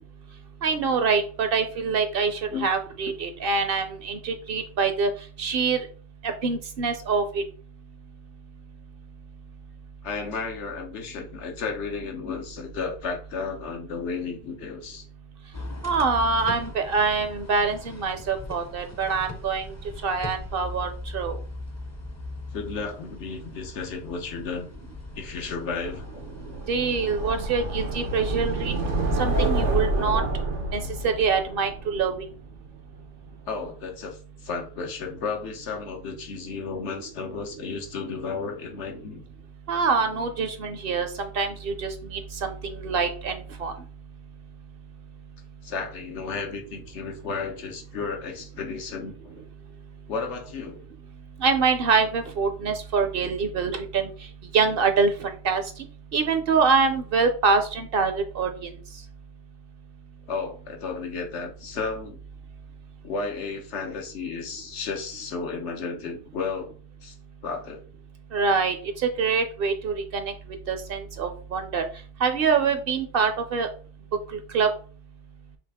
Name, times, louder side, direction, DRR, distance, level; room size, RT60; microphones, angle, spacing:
voice 1, 0.6-5.1 5.4-5.8 6.2-7.4 15.8-19.7 20.0-21.4 26.7-28.7 29.2-30.2 30.7-32.2 39.7-43.7 51.4-54.1 54.5-55.6 56.1-58.7 68.3-68.8 69.0-70.3 70.7-71.8 72.2-73.7 74.5-74.7, right 5 dB, 60° right, 7 dB, 0.7 m, -25 dB
voice 2, 10.0-15.0 22.5-24.7 25.1-26.0 33.5-39.2 45.6-49.4 50.1-50.8 60.3-62.2 63.0-66.7 67.0-67.1 67.4-67.8, left 4 dB, 80° left, 4 dB, 1.2 m, -33 dB
sound 1, 15.5-29.5, left 2 dB, 20° left, 0.5 m, -40 dB
sound 2, 25.7-32.7, right 2 dB, 90° right, 1.2 m, -28 dB
5.8 x 2.4 x 3.5 m, 0.40 s
omnidirectional pair, 1.2 m